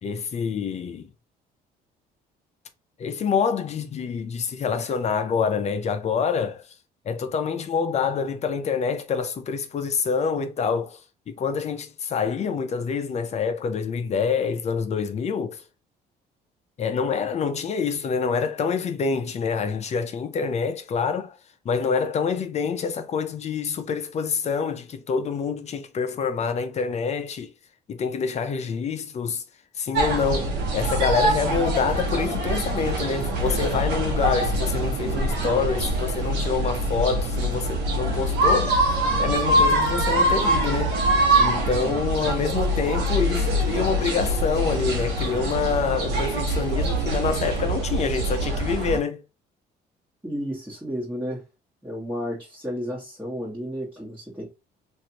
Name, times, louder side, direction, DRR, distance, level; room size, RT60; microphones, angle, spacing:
voice 1, 0.0-1.1 3.0-6.6 7.1-11.0 11.3-15.6 16.8-21.4 21.6-27.5 27.9-29.4 29.8-38.8 39.2-41.0 41.4-49.2, left 6 dB, 40° left, 0.6 m, -26 dB
sound 1, 29.9-49.0, right 1 dB, 85° right, 1.3 m, -24 dB
voice 2, 50.2-51.4 51.8-54.5, equal, 5° right, 1.4 m, -32 dB
3.2 x 2.6 x 2.8 m
cardioid pair, 110°, 17 cm